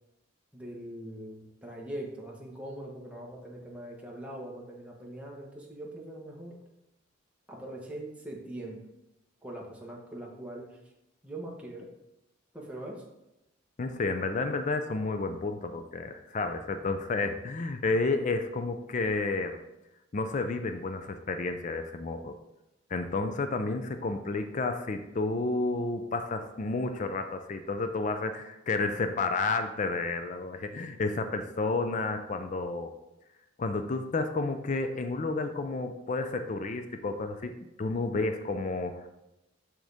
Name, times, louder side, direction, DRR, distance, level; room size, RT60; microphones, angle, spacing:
voice 1, 0.5-6.6 7.5-8.8 9.4-10.8 11.2-11.9 12.5-13.0, right 1 dB, 5° right, -3 dB, 1.3 m, -42 dB
voice 2, 13.8-19.6 20.1-22.4 22.9-32.9 33.6-37.5 37.8-39.1, left 3 dB, 40° left, 7 dB, 0.4 m, -31 dB
6.4 x 6.3 x 3.5 m, 0.93 s
head